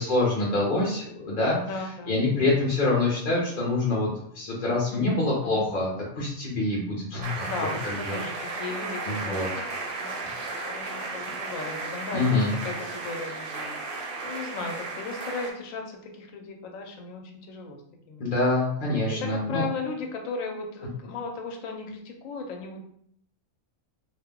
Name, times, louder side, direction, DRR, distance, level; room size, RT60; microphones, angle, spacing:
voice 1, 0.0-1.6 2.1-4.1 4.3-5.9 6.2-7.5 7.8-8.1 9.1-9.4 12.1-12.5 18.2-19.6, left 2 dB, 50° left, -5 dB, 0.6 m, -25 dB
voice 2, 1.6-2.4 4.9-5.7 7.4-9.7 9.9-10.2 10.6-13.7 14.2-17.8 18.1-18.4 19.1-22.9, left 3 dB, 75° left, 3 dB, 1.0 m, -36 dB
sound 1, 7.2-15.5, right 3 dB, 55° right, 0.6 m, -34 dB
2.4 x 2.0 x 3.5 m, 0.68 s
omnidirectional pair, 1.4 m